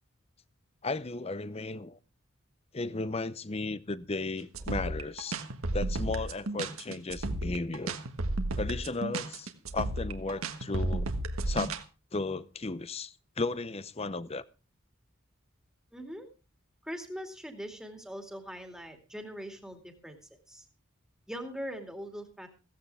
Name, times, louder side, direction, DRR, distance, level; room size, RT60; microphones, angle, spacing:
voice 1, 0.8-2.0 2.7-5.4 5.7-8.0 8.6-11.1 11.5-11.8 12.1-14.4, left 3 dB, 30° left, 0.7 m, -35 dB
sound 1, 4.5-11.8, right 2 dB, 85° right, 1.6 m, -33 dB
voice 2, 15.9-16.3 16.8-20.2 20.5-20.6 21.3-22.5, equal, 5° right, 2.4 m, -41 dB
16.5 x 15.0 x 3.4 m
head